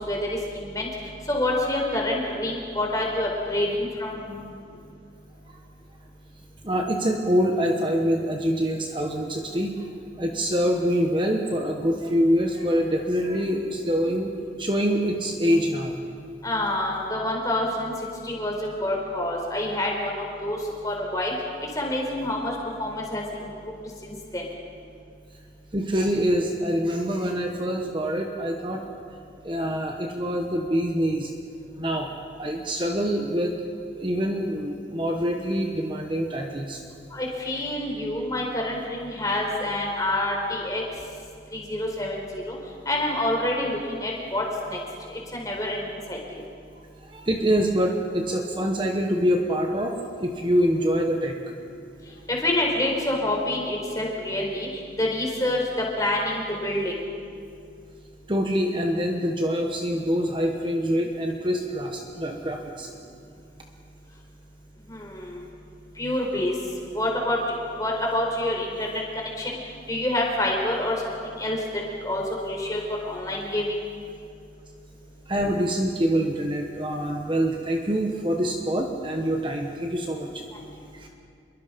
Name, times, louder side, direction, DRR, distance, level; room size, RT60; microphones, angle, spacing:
voice 1, 0.5-0.9 1.3-4.2 16.4-17.9 18.2-20.6 20.8-21.3 21.7-22.5 22.8-23.2 24.0-24.4 37.1-40.8 41.5-42.6 42.9-44.8 45.3-46.2 52.4-54.7 55.0-55.6 56.0-57.0 64.9-65.4 66.0-66.5 66.9-67.4 67.8-68.9 69.1-69.6 69.9-71.6 72.0-73.7, left 1 dB, 20° left, -1 dB, 4.4 m, -27 dB
voice 2, 6.6-9.9 10.2-14.3 14.6-16.0 25.7-28.9 29.4-31.3 31.7-32.1 32.4-33.5 33.9-36.8 47.0-51.4 58.3-62.9 75.3-80.4 80.9-81.1, equal, 25° right, 2 dB, 1.3 m, -25 dB
27.0 x 22.5 x 5.3 m, 2.4 s
head